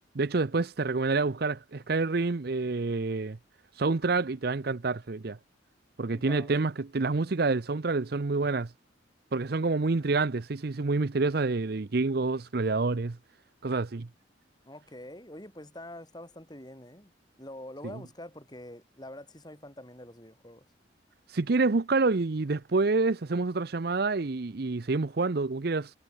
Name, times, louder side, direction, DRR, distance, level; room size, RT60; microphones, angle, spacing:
voice 1, 0.1-3.4 3.8-5.4 6.0-8.7 9.3-13.2 13.6-14.1 21.3-25.9, right 3 dB, 55° right, 0.7 m, -27 dB
voice 2, 6.1-6.5 14.6-17.1 17.4-20.6, left 1 dB, 20° left, 7.8 m, -45 dB
head